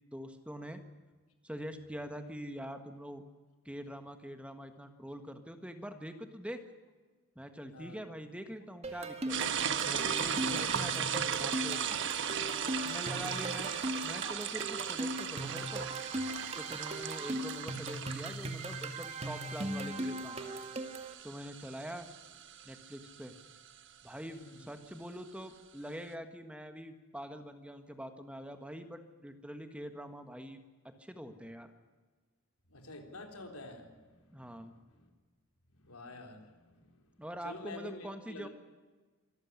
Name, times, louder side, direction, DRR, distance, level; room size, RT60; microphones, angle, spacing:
voice 1, 0.1-0.8 1.4-3.2 3.6-6.6 7.3-9.6 9.8-12.1 12.8-13.7 14.0-15.9 16.6-20.6 21.2-22.1 22.6-23.3 24.0-30.6 31.0-31.7 34.3-34.7 37.2-38.5, equal, 5° right, 7 dB, 1.5 m, -44 dB
sound 1, 8.8-21.1, right 1 dB, 30° right, 1.9 m, -39 dB
sound 2, 9.3-23.7, right 8 dB, 55° right, 1.3 m, -37 dB
voice 2, 32.7-34.7 35.8-36.9 37.4-38.5, left 2 dB, 85° left, 4 dB, 3.9 m, -48 dB
25.5 x 14.0 x 9.9 m, 1.3 s
head